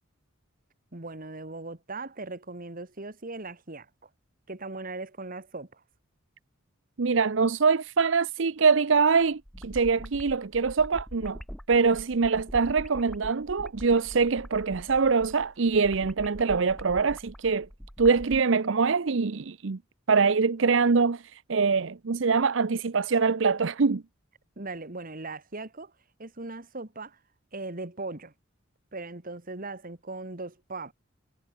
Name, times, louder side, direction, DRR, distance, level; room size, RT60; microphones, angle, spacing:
voice 1, 0.9-4.1 4.5-5.8 24.6-25.9 26.2-27.2 27.5-28.3 28.9-30.9, right 3 dB, 45° right, 2.1 m, -39 dB
voice 2, 7.0-11.4 11.7-17.7 18.0-19.8 20.1-24.0, right 5 dB, 65° right, 0.7 m, -24 dB
sound 1, 9.2-18.4, equal, ahead, 2.2 m, -43 dB
head